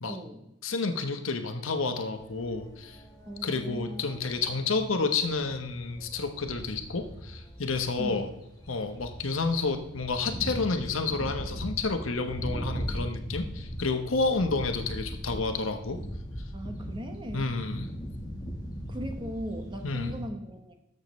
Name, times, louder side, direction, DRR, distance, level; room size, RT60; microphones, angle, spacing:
voice 1, 0.1-0.4 3.3-4.1 8.0-8.2 16.5-17.5 18.9-20.7, equal, 20° right, 5 dB, 0.9 m, -38 dB
voice 2, 0.6-3.0 3.4-8.3 8.7-16.0 17.3-17.9 19.8-20.1, left 3 dB, 75° left, 6 dB, 1.0 m, -30 dB
sound 1, 2.1-20.2, equal, 20° left, 1.3 m, -40 dB
13.5 x 6.6 x 3.1 m, 0.85 s
head